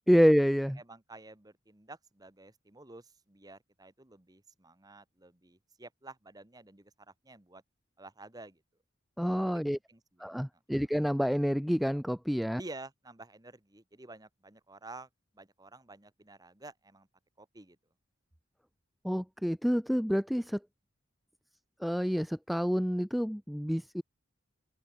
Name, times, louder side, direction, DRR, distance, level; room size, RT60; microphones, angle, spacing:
voice 1, 0.1-0.8 9.2-9.8 10.2-12.6 19.0-20.6 21.8-24.0, equal, ahead, 0.4 m, -28 dB
voice 2, 0.8-6.9 7.2-7.6 8.0-8.6 9.5-9.6 9.9-10.3 10.7-10.9 12.6-15.1 15.3-17.1 17.4-17.8, right 2 dB, 20° right, 1.4 m, -50 dB
open air
head